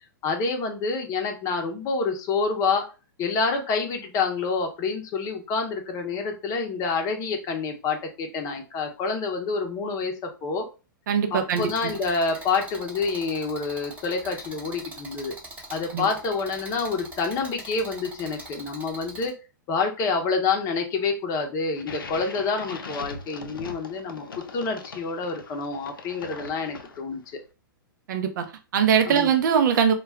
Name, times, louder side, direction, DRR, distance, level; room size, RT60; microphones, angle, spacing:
voice 1, 0.2-2.9 3.2-10.7 11.3-15.3 15.7-19.3 19.7-24.3 24.5-27.4 29.1-29.3, left 4 dB, 30° left, 0.7 m, -27 dB
voice 2, 11.1-11.7 15.9-16.1 28.1-29.9, right 7 dB, 60° right, 0.6 m, -22 dB
sound 1, 11.5-19.3, right 2 dB, 15° right, 0.9 m, -42 dB
sound 2, 21.7-27.3, left 4 dB, 80° left, 0.5 m, -40 dB
2.3 x 2.1 x 3.4 m
hypercardioid pair, 115°, 11 cm